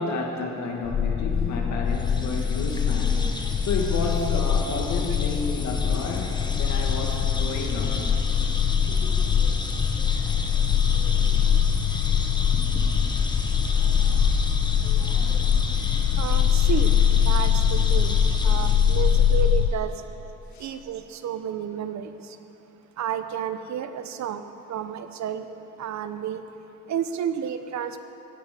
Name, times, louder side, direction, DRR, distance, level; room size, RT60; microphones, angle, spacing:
voice 1, 0.0-3.3 3.6-8.0 8.9-9.2 11.1-11.5 11.9-12.0 15.8-16.0 20.5-20.7, left 3 dB, 70° left, 1 dB, 2.1 m, -31 dB
sound 1, 0.8-19.7, left 8 dB, 35° left, 0.6 m, -23 dB
sound 2, 1.9-19.7, left 2 dB, 15° left, 1.2 m, -34 dB
voice 2, 16.2-16.9 17.2-18.2 18.4-19.9 20.6-22.1 23.0-24.4 24.7-26.4 26.9-28.0, right 8 dB, 65° right, 10 dB, 0.8 m, -31 dB
16.5 x 9.4 x 5.5 m, 3.0 s
cardioid pair, 90°, 30 cm